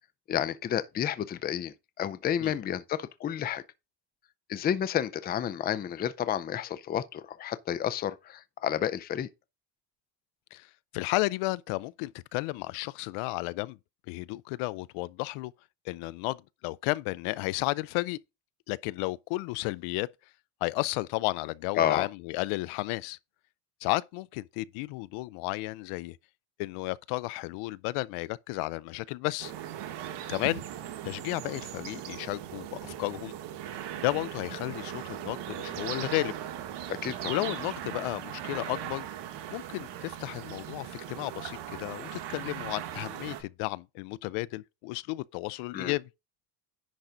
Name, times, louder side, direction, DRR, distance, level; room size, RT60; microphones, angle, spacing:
voice 1, 0.3-3.6 4.5-9.3 21.8-22.1 36.9-37.3 45.7-46.0, left 10 dB, 20° left, 0.4 m, -30 dB
voice 2, 2.4-2.7 10.5-13.8 14.1-15.5 15.8-18.2 18.7-20.1 20.6-23.2 23.8-26.2 26.6-29.5 30.3-30.6 31.0-33.3 34.0-36.4 37.3-39.1 39.5-46.1, left 21 dB, 80° left, 0.6 m, -33 dB
sound 1, 29.4-43.4, right 11 dB, 55° right, 1.7 m, -39 dB
10.5 x 3.9 x 5.0 m
cardioid pair, 145°, 49 cm